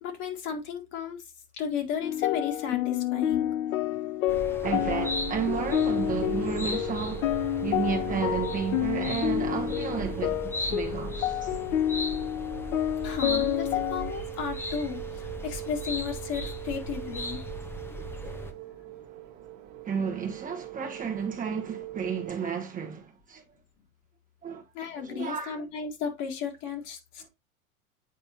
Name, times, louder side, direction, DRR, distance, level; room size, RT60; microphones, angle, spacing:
voice 1, 0.0-1.2 1.5-3.5 13.0-17.4 24.7-27.3, left 7 dB, 45° left, 1.9 m, -34 dB
sound 1, 2.0-14.1, left 12 dB, 70° left, 0.6 m, -29 dB
sound 2, 4.3-18.5, equal, 5° left, 0.7 m, -37 dB
voice 2, 4.4-11.6 19.8-23.6 24.4-24.6 24.9-25.6, right 6 dB, 20° right, 1.0 m, -32 dB
sound 3, 4.6-22.3, right 16 dB, 45° right, 1.4 m, -41 dB
8.5 x 4.3 x 2.9 m
hypercardioid pair, 95°, 42 cm